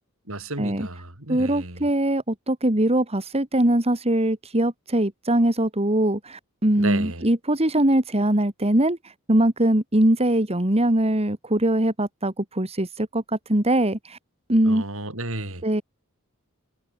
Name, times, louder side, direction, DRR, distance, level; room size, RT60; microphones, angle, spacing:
voice 1, 0.3-1.9 6.8-7.3 14.7-15.6, right 2 dB, 65° right, 7.1 m, -32 dB
voice 2, 1.3-14.2 14.5-14.8 15.6-15.8, right 1 dB, 30° right, 2.5 m, -22 dB
head